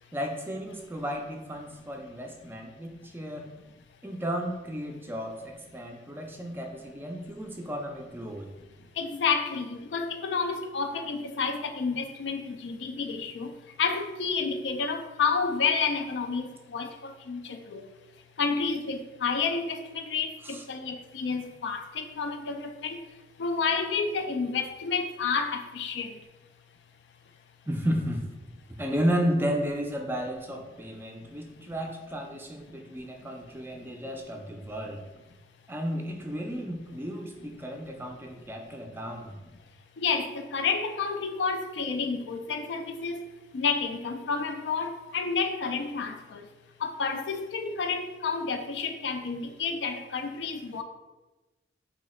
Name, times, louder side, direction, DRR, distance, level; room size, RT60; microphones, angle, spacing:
voice 1, 0.1-3.5 4.0-8.5 20.4-20.6 27.7-28.2 28.8-35.0 35.7-39.3, equal, 10° right, 2 dB, 0.4 m, -33 dB
voice 2, 9.0-13.5 13.8-17.8 18.4-23.0 23.4-26.2 40.0-43.2 43.5-46.4 46.8-50.8, left 5 dB, 70° left, 6 dB, 0.4 m, -30 dB
3.1 x 2.8 x 4.1 m, 1.1 s
head